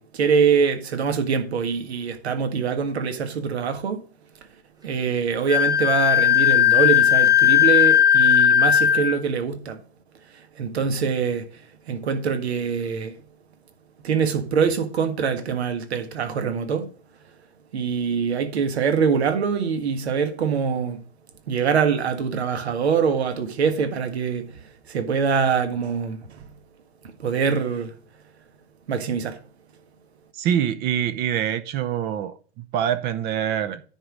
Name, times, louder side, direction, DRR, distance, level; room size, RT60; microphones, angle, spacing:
voice 1, 0.0-4.0 4.8-9.8 10.3-13.1 14.0-16.9 17.7-21.0 21.5-26.5 27.2-27.9 28.9-29.4, right 6 dB, 75° right, 1.6 m, -24 dB
Wind instrument woodwind instrument, 5.5-9.2, left 10 dB, 10° right, 1.1 m, -17 dB
voice 2, 30.3-33.8, right 9 dB, 30° right, 0.7 m, -25 dB
9.9 x 3.9 x 6.2 m
hypercardioid pair, 115°, 33 cm